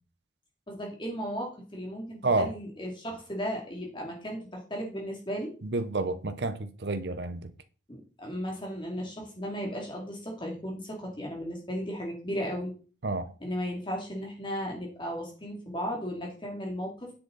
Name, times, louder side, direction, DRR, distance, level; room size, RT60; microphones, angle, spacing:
voice 1, 0.7-5.5 7.9-12.7 13.4-17.1, equal, 30° left, 2.7 m, -35 dB
voice 2, 2.2-2.5 5.6-7.5 13.0-13.3, right 3 dB, 70° right, 0.9 m, -29 dB
10.0 x 8.0 x 4.1 m
head